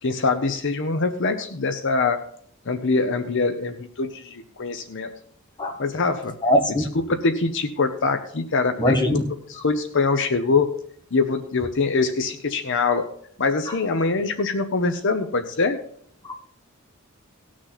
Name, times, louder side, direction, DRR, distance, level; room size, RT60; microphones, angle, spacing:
voice 1, 0.0-2.2 2.7-5.1 5.8-6.4 6.7-9.2 9.5-10.7 11.1-13.1 13.4-15.8, left 4 dB, 60° left, 8 dB, 0.8 m, -23 dB
voice 2, 6.4-6.8 8.8-9.2 16.3-16.4, left 1 dB, 20° left, 3 dB, 1.7 m, -20 dB
18.5 x 6.3 x 4.1 m, 0.62 s
head